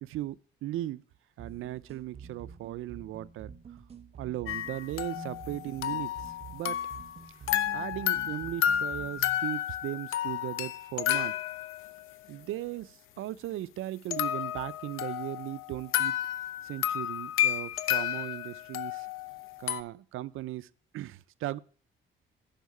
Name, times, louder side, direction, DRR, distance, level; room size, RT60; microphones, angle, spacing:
voice 1, 0.0-1.0 1.4-3.5 4.2-6.8 7.7-11.3 12.3-16.2 16.6-19.1 19.6-21.6, right 14 dB, 85° right, 0.5 m, -37 dB
sound 1, 1.4-9.4, right 6 dB, 30° right, 0.9 m, -48 dB
sound 2, 4.5-7.2 7.5-12.1 14.1-19.8, left 11 dB, 85° left, 0.7 m, -31 dB
10.0 x 5.6 x 8.3 m
cardioid pair, 165°, 21 cm